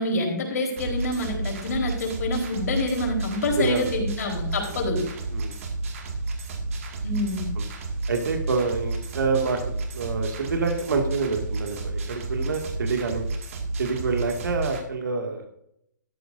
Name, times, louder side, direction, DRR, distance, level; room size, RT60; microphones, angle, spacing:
voice 1, 0.0-5.0 7.0-7.5, left 2 dB, 55° left, 1 dB, 4.2 m, -27 dB
sound 1, 0.8-14.8, right 2 dB, 45° right, 2.1 m, -31 dB
voice 2, 8.1-9.6 9.9-13.3 13.8-15.6, right 4 dB, 75° right, 3 dB, 2.2 m, -27 dB
13.5 x 11.0 x 2.7 m, 0.74 s
hypercardioid pair, 165°, 10 cm